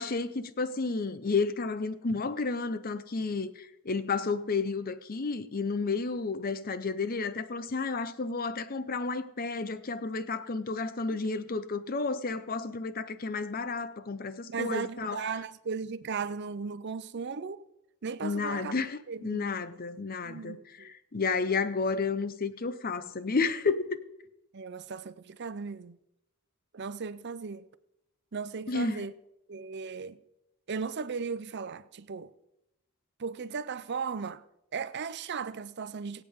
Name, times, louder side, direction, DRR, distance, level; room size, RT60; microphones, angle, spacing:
voice 1, 0.0-15.2 18.2-20.6 20.8-24.0 28.7-29.1, left 4 dB, 40° left, 0.7 m, -31 dB
voice 2, 14.5-17.6 18.0-18.7 19.1-19.5 20.2-20.9 24.5-26.0 26.7-27.7 28.3-29.1 29.5-30.2 30.7-32.3 33.2-34.4 34.7-36.2, right 5 dB, 50° right, 0.5 m, -36 dB
22.5 x 8.2 x 3.6 m
head